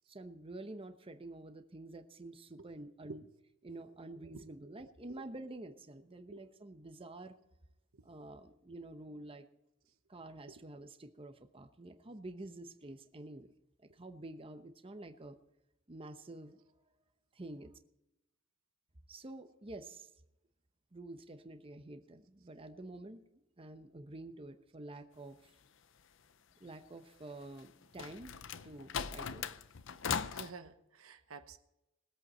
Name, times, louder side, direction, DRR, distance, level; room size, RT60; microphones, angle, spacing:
voice 1, 0.1-3.3 3.6-7.3 8.0-9.4 10.1-13.5 13.9-15.4 15.9-16.6 17.3-17.7 19.1-20.1 20.9-23.2 23.6-25.5 26.6-28.4 28.6-29.6, right 2 dB, 25° right, 0.9 m, -49 dB
voice 2, 4.7-5.2 6.3-6.4 30.3-31.6, right 4 dB, 85° right, 1.0 m, -51 dB
sound 1, 27.6-30.5, left 7 dB, 65° left, 0.6 m, -39 dB
20.5 x 8.3 x 4.3 m
head